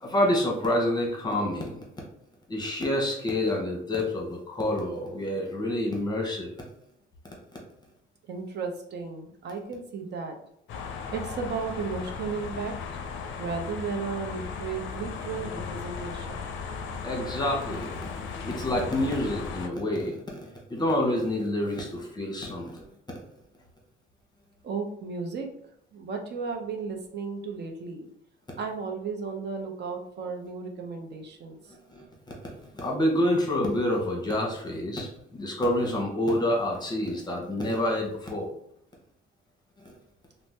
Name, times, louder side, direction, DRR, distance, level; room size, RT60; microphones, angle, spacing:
voice 1, 0.0-1.8 2.5-6.5 17.0-22.8 31.9-32.0 32.4-38.5 39.8-39.9, left 1 dB, 20° left, 0 dB, 0.9 m, -28 dB
voice 2, 8.3-10.4 11.1-12.7 13.4-16.5 24.6-25.5 25.9-28.1 28.6-31.6, right 5 dB, 60° right, 3 dB, 0.6 m, -34 dB
sound 1, 10.7-19.7, left 5 dB, 70° left, 0.4 m, -36 dB
2.6 x 2.0 x 3.3 m, 0.73 s
cardioid pair, 90°, 20 cm